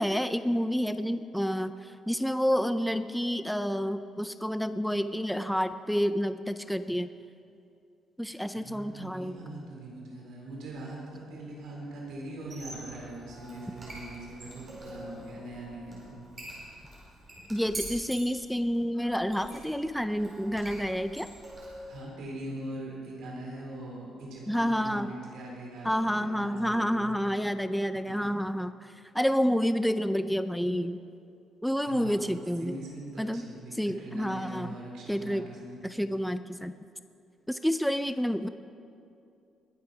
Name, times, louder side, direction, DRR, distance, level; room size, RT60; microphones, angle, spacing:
voice 1, 0.0-7.1 8.2-9.4 17.5-21.3 24.5-25.1 25.8-28.7 29.1-31.0 31.6-32.7 33.2-33.4 33.7-34.7 35.1-35.5 35.8-36.7 37.5-38.5, equal, ahead, 11 dB, 0.4 m, -29 dB
voice 2, 8.5-16.1 21.9-27.2 28.0-28.3 31.8-35.8, right 2 dB, 75° right, -3 dB, 4.1 m, -42 dB
Squeak, 12.4-22.0, right 1 dB, 25° right, 4.7 m, -45 dB
21.0 x 8.6 x 6.0 m, 2.5 s
cardioid pair, 160°, 0 cm